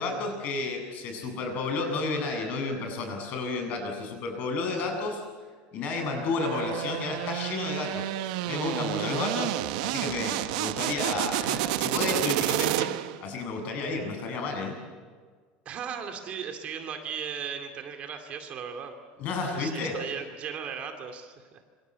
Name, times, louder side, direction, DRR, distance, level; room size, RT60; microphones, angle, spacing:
voice 1, 0.0-5.2 5.7-9.5 9.8-12.9 13.2-14.8 19.2-20.0, left 3 dB, 40° left, 4 dB, 7.8 m, -31 dB
sound 1, 6.4-13.2, right 16 dB, 75° right, 1.1 m, -30 dB
voice 2, 15.7-19.0 19.5-21.6, right 7 dB, 30° right, 5 dB, 2.5 m, -37 dB
27.0 x 26.0 x 8.2 m, 1.5 s
cardioid pair, 170°, 4 cm